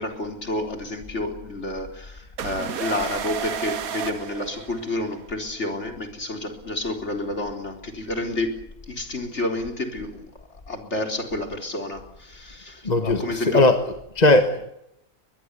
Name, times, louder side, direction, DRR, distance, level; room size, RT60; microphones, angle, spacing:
voice 1, 0.0-8.6 8.9-10.3 10.7-13.6, left 2 dB, 50° left, 4.4 m, -30 dB
sound 1, 2.4-5.2, right 8 dB, 75° right, 1.6 m, -32 dB
voice 2, 12.8-14.7, left 2 dB, 30° left, 1.5 m, -19 dB
23.0 x 21.5 x 8.3 m
omnidirectional pair, 1.6 m